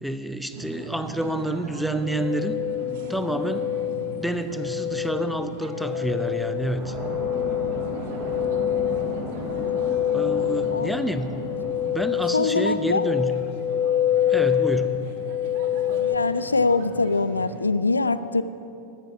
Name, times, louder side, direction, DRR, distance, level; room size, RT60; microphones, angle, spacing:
voice 1, 0.0-3.7 4.1-6.9 10.1-11.4 11.9-13.4 14.3-15.1, right 1 dB, ahead, 9 dB, 0.6 m, -29 dB
sound 1, 0.5-17.6, right 3 dB, 50° right, 1.4 m, -40 dB
sound 2, 1.9-16.2, left 11 dB, 35° left, 0.9 m, -26 dB
sound 3, 6.7-13.1, equal, 25° right, 3.0 m, -36 dB
voice 2, 9.5-9.8 10.3-10.9 12.3-13.1 16.0-18.4, left 3 dB, 80° left, 14 dB, 0.4 m, -24 dB
14.0 x 12.5 x 4.8 m, 2.8 s
figure-of-eight pair, 90°, 0 cm